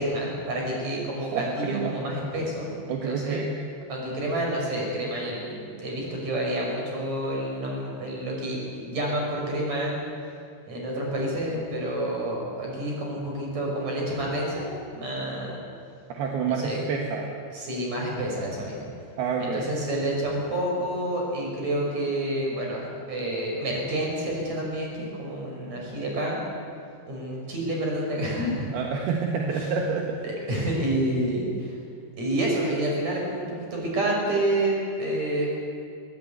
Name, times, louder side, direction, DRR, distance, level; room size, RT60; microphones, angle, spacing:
voice 1, 0.0-3.4 3.9-10.0 10.7-14.7 14.9-15.6 16.4-16.8 17.5-18.9 19.4-26.4 27.0-28.7 29.5-29.7 30.2-31.8 32.2-35.5, right 1 dB, 45° right, -1 dB, 7.1 m, -29 dB
voice 2, 1.2-2.0 2.9-3.6 16.1-17.4 19.2-19.7 28.7-30.5, right 5 dB, 75° right, 1 dB, 3.4 m, -28 dB
22.0 x 18.5 x 9.5 m, 2.4 s
omnidirectional pair, 4.6 m